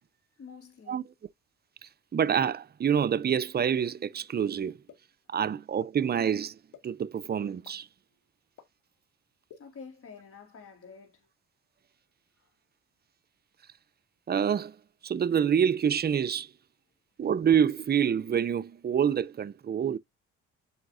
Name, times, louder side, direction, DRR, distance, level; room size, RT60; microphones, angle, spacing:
voice 1, 0.4-1.1 9.6-11.3, left 5 dB, 50° left, 3.7 m, -48 dB
voice 2, 2.1-4.8 5.3-6.6 6.8-7.9 14.3-14.8 15.0-16.5 17.2-20.0, right 8 dB, 35° right, 0.5 m, -27 dB
sound 1, 4.9-5.0 5.8-5.9 6.7-6.8 7.6-7.7 8.6-8.7 9.5-9.6, left 9 dB, 85° left, 1.9 m, -48 dB
8.3 x 4.9 x 2.6 m
cardioid pair, 90°, 30 cm